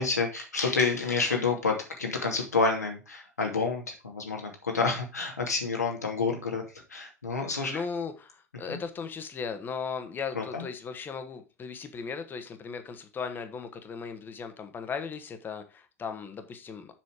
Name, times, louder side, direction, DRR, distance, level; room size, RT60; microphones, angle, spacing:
voice 1, 0.0-7.8 8.7-8.8 10.3-10.6, left 4 dB, 80° left, 2 dB, 2.5 m, -29 dB
voice 2, 7.7-16.9, left 5 dB, 25° left, 8 dB, 1.5 m, -37 dB
7.4 x 6.2 x 4.9 m, 0.31 s
figure-of-eight pair, 90°, 9 cm